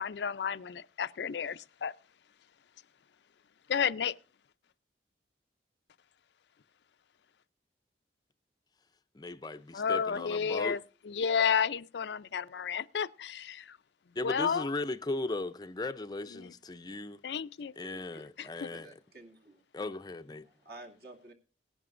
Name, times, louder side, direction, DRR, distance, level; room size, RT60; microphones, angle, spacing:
voice 1, 0.0-1.9 3.7-4.2 9.7-10.8 11.1-13.8 14.2-14.7 16.3-16.5 17.2-17.7 18.4-18.7, left 7 dB, 75° left, 0.5 m, -31 dB
voice 2, 9.1-10.8 14.2-17.2 17.8-18.9 19.7-20.5, left 2 dB, 25° left, 0.5 m, -37 dB
voice 3, 17.9-18.2 18.7-19.6 20.6-21.3, right 2 dB, 60° right, 2.3 m, -50 dB
18.5 x 11.0 x 2.5 m
head